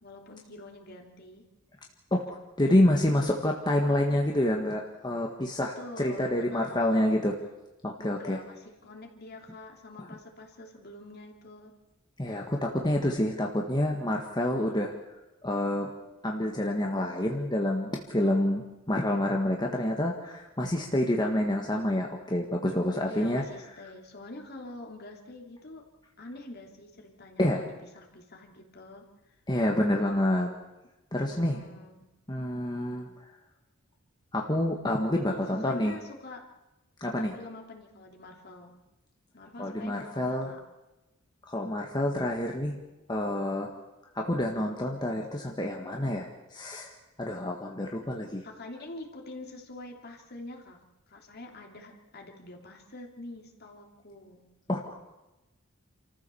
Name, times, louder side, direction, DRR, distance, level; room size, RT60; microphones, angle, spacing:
voice 1, 0.0-1.4 5.6-6.9 8.0-11.8 23.0-25.8 26.2-29.3 31.3-32.1 35.3-36.5 37.3-38.8 39.3-40.6 48.4-50.8 51.1-54.5, left 2 dB, 50° left, 1 dB, 3.1 m, -46 dB
voice 2, 2.1-7.3 7.8-8.4 12.2-14.9 15.4-15.9 16.2-23.4 27.4-27.6 29.5-30.5 31.1-31.6 32.3-33.1 34.3-35.9 37.0-37.4 39.6-40.5 41.5-42.8 43.1-43.7 44.1-46.9 47.2-48.4 54.7-55.0, left 1 dB, 20° left, 0 dB, 1.7 m, -28 dB
28.0 x 14.5 x 7.0 m, 1.0 s
head